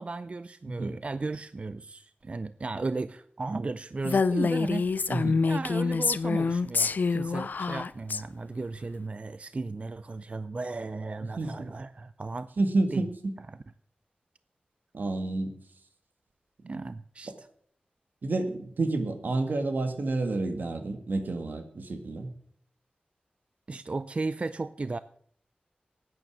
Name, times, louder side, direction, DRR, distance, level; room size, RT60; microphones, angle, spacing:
voice 1, 0.0-4.9 5.4-12.5 12.9-13.0 13.5-13.6 16.7-17.5 23.7-25.0, right 3 dB, 40° right, 14 dB, 0.4 m, -35 dB
Female speech woman speaking, 4.0-8.2, left 4 dB, 70° left, 0.5 m, -26 dB
voice 2, 5.1-5.4 11.4-11.7 12.6-13.3 14.9-15.5 17.3-17.4 18.2-22.3, right 2 dB, 75° right, 7 dB, 1.7 m, -29 dB
10.5 x 9.4 x 7.3 m, 0.62 s
wide cardioid pair, 100°, 3 cm